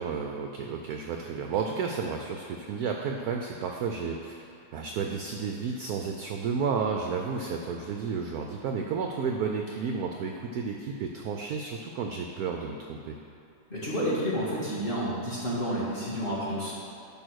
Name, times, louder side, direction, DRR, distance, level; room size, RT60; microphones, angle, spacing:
voice 1, 0.0-4.5 4.7-13.2, right 5 dB, 75° right, 2 dB, 0.9 m, -32 dB
voice 2, 13.7-16.7, equal, 30° left, -8 dB, 1.9 m, -30 dB
10.5 x 3.7 x 6.3 m, 2.8 s
omnidirectional pair, 2.1 m